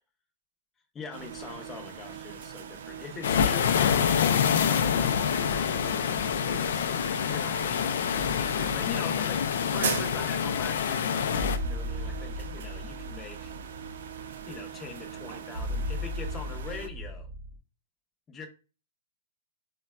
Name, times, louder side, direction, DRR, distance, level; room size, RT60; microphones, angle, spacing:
voice 1, 0.9-6.9 7.3-13.5 14.5-17.3 18.3-18.5, left 5 dB, 15° left, 2 dB, 0.7 m, -43 dB
sound 1, 1.1-16.9, right 8 dB, 65° right, 0.4 m, -40 dB
sound 2, 3.2-11.6, left 8 dB, 70° left, 0.4 m, -26 dB
sound 3, 8.2-17.6, left 1 dB, 40° right, 0.7 m, -37 dB
3.9 x 2.2 x 2.3 m, 0.33 s
hypercardioid pair, 145°, 0 cm